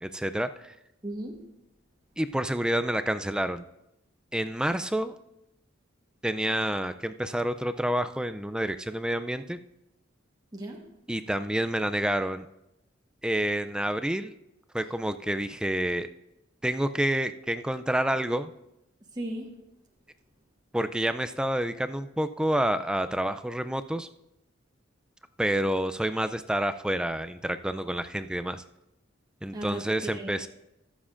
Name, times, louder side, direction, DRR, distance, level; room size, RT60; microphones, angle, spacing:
voice 1, 0.0-0.7 2.2-3.6 4.3-5.2 6.2-9.6 11.1-12.5 13.2-14.3 14.7-16.1 16.6-18.5 20.7-24.1 25.4-28.6 29.4-30.5, right 1 dB, 5° right, 10 dB, 0.3 m, -28 dB
voice 2, 1.0-1.5 10.5-10.8 19.1-19.6 29.5-30.5, right 1 dB, 20° right, -1 dB, 1.2 m, -37 dB
21.5 x 7.3 x 2.5 m, 0.90 s
head